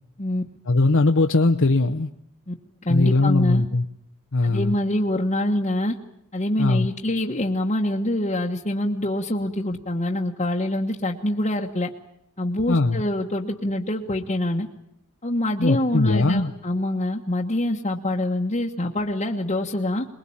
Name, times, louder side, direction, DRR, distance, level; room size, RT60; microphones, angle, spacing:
voice 1, 0.7-2.1 2.9-3.8 4.3-4.7 6.6-6.9 12.7-13.0 15.6-16.5, left 2 dB, 60° left, 5 dB, 0.9 m, -20 dB
voice 2, 2.8-3.6 4.4-5.9 6.3-11.9 12.4-14.7 15.2-20.1, left 1 dB, 30° left, -1 dB, 1.4 m, -25 dB
23.0 x 21.5 x 8.7 m, 0.74 s
head